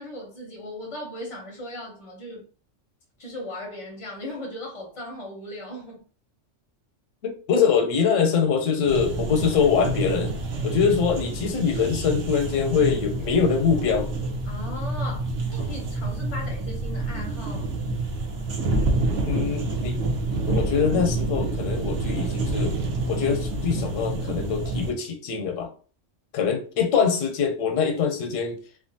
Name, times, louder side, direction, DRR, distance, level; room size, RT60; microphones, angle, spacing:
voice 1, 0.0-2.5 3.2-6.0 14.5-17.7, left 1 dB, 35° left, 0.5 m, -37 dB
voice 2, 7.2-10.3 10.6-14.1 19.3-20.0 20.5-22.8 23.1-25.7 26.3-28.6, left 6 dB, 85° left, 0.9 m, -23 dB
sound 1, 8.9-24.9, right 2 dB, 75° right, 0.9 m, -28 dB
2.5 x 2.4 x 2.6 m
omnidirectional pair, 1.3 m